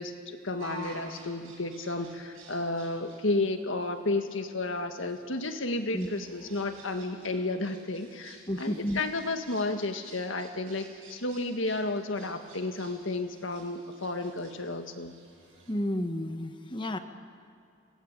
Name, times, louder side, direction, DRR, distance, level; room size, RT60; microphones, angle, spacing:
voice 1, 0.0-15.1, left 2 dB, 65° left, 6 dB, 1.8 m, -32 dB
sound 1, 0.6-15.7, right 2 dB, 70° right, 6.9 m, -51 dB
voice 2, 8.5-9.0 15.7-17.0, equal, 20° left, 7 dB, 1.2 m, -31 dB
26.0 x 19.0 x 8.9 m, 2.4 s
head